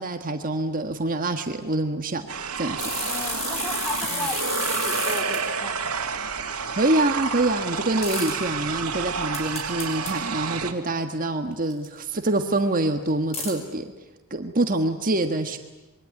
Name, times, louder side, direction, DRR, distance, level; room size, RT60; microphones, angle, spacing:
voice 1, 0.0-2.3 2.6-2.9 4.1-4.3 6.8-13.9 14.3-15.6, right 2 dB, 40° right, 6 dB, 1.5 m, -25 dB
sound 1, 2.3-10.7, right 5 dB, 80° right, 2.5 m, -29 dB
sound 2, 2.8-5.4 8.0-8.3 9.3-10.1 11.7-11.9 13.3-13.5, left 3 dB, 30° left, 5.2 m, -31 dB
voice 2, 3.0-6.0, left 1 dB, 10° left, 6 dB, 3.0 m, -35 dB
26.0 x 22.5 x 9.6 m, 1.0 s
head